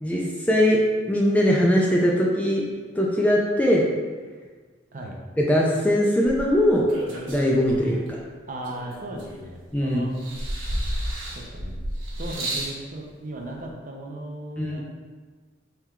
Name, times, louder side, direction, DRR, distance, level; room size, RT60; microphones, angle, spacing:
voice 1, 0.0-0.8 1.1-2.7 2.9-3.9 5.4-6.9 7.3-8.2 9.7-10.0 14.6-14.8, equal, 10° left, -3 dB, 0.3 m, -21 dB
sound 1, 6.3-8.1 8.6-9.7 10.1-12.8 13.7-13.8, right 1 dB, 80° right, 1.1 m, -32 dB
voice 2, 8.5-10.1 11.3-11.7 12.2-14.8, right 1 dB, 40° right, 0 dB, 0.6 m, -36 dB
4.4 x 3.4 x 2.3 m, 1.4 s
head